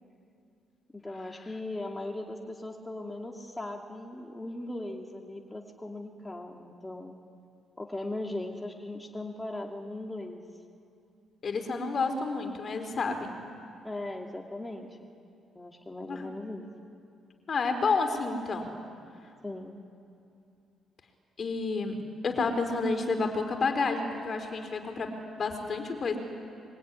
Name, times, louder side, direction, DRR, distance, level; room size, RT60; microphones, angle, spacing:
voice 1, 0.9-7.2 7.8-10.4 13.8-15.0 15.5-16.7 19.4-19.8, left 2 dB, 15° left, 1 dB, 2.6 m, -38 dB
voice 2, 11.4-13.4 16.1-16.2 17.5-18.7 21.4-22.0 22.2-26.2, left 4 dB, 45° left, 6 dB, 4.0 m, -30 dB
24.5 x 23.5 x 9.9 m, 2.5 s
cardioid pair, 90°, 0 cm